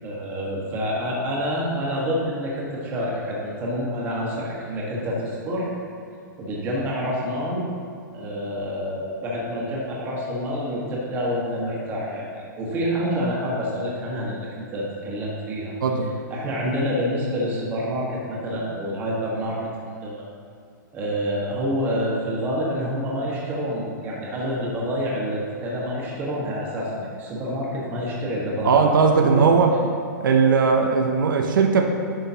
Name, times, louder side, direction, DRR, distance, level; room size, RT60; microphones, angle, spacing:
voice 1, 0.0-5.7 6.4-7.6 8.1-15.7 16.3-19.6 20.0-20.3 20.9-29.8, equal, 20° right, -5 dB, 1.3 m, -27 dB
voice 2, 28.6-29.7 30.2-31.8, right 5 dB, 80° right, 3 dB, 0.7 m, -18 dB
9.9 x 5.5 x 2.8 m, 2.2 s
hypercardioid pair, 165°, 11 cm